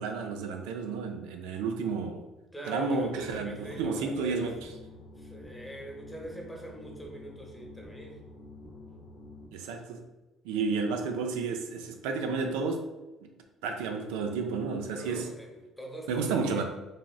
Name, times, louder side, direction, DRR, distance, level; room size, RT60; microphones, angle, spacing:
voice 1, 0.0-2.2 2.7-4.6 9.5-10.0 10.4-12.9 13.2-13.3 13.6-15.3 16.1-16.6, right 4 dB, 90° right, 4 dB, 0.3 m, -31 dB
voice 2, 2.5-4.6 5.2-8.2 14.9-16.6, right 1 dB, 10° left, 0 dB, 0.8 m, -43 dB
sound 1, 3.0-9.5, left 2 dB, 70° left, 0.7 m, -48 dB
3.3 x 2.4 x 2.3 m, 1.1 s
supercardioid pair, 75°, 0 cm